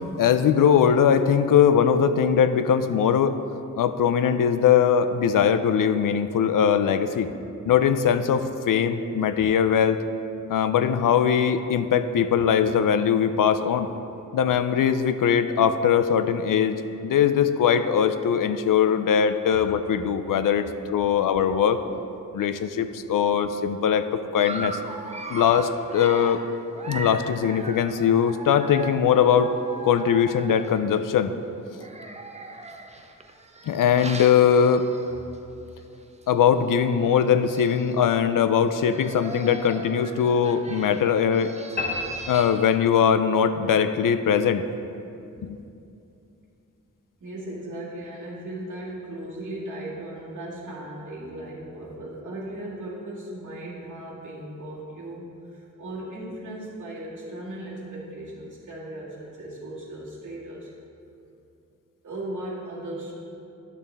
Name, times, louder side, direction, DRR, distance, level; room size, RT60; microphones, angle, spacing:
voice 1, 0.2-3.4 3.8-7.3 7.7-10.0 10.5-13.9 14.3-21.8 22.3-24.1 24.3-24.8 25.3-26.4 26.9-29.5 29.8-31.3 33.7-34.8 36.3-41.5 42.3-44.6 45.4-45.6, left 8 dB, 90° left, 11 dB, 0.5 m, -21 dB
Dog, 24.4-31.0 31.7-35.4 35.8-35.9 36.2-36.3 37.2-37.3 37.5-38.0 38.6-42.7, right 2 dB, 20° right, 0.5 m, -39 dB
sound 1, 41.8-43.3, left 2 dB, 30° left, 1.0 m, -32 dB
voice 2, 47.2-60.7 62.0-63.1, right 1 dB, 65° right, -7 dB, 2.0 m, -37 dB
10.5 x 6.9 x 3.4 m, 2.7 s
wide cardioid pair, 150°, 32 cm